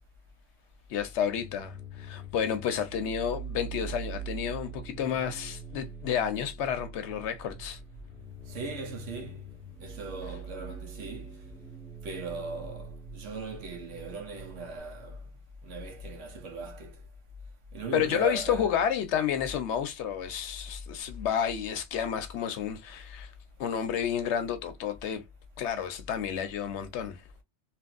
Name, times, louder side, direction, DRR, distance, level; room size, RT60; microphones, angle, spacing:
voice 1, 0.9-7.8 17.9-23.3 23.6-25.2 25.6-27.2, left 8 dB, 70° left, 0.9 m, -30 dB
sound 1, 1.1-14.8, right 4 dB, 15° left, 0.4 m, -43 dB
voice 2, 8.5-9.5 9.8-11.5 12.0-15.3 15.6-17.0 17.7-18.7, right 3 dB, 80° right, 1.2 m, -39 dB
2.9 x 2.6 x 2.4 m
omnidirectional pair, 1.2 m